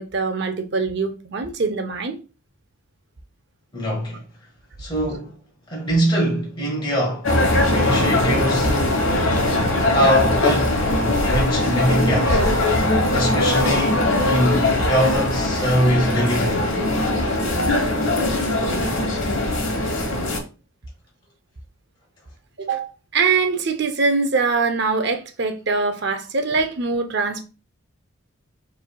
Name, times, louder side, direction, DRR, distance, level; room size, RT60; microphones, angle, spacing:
voice 1, 0.0-2.2 22.6-27.4, right 4 dB, 55° right, 0.5 m, -23 dB
voice 2, 3.7-4.2 4.8-5.3 5.7-7.3 7.7-8.8 9.9-12.4 13.1-16.7, equal, 20° left, 1.2 m, -23 dB
sound 1, 7.2-20.4, left 1 dB, 70° left, 1.1 m, -20 dB
4.9 x 3.3 x 2.2 m
head